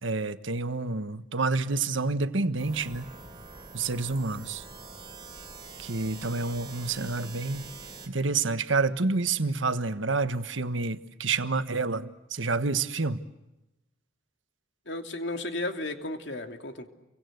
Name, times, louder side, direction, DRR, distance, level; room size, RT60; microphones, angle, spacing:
voice 1, 0.0-3.1 3.7-4.6 5.8-7.6 8.1-13.2, right 3 dB, 75° right, 1.4 m, -28 dB
sound 1, 2.6-8.1, right 3 dB, 20° right, 3.7 m, -45 dB
voice 2, 14.9-16.9, left 2 dB, 60° left, 2.9 m, -34 dB
30.0 x 24.0 x 8.0 m
head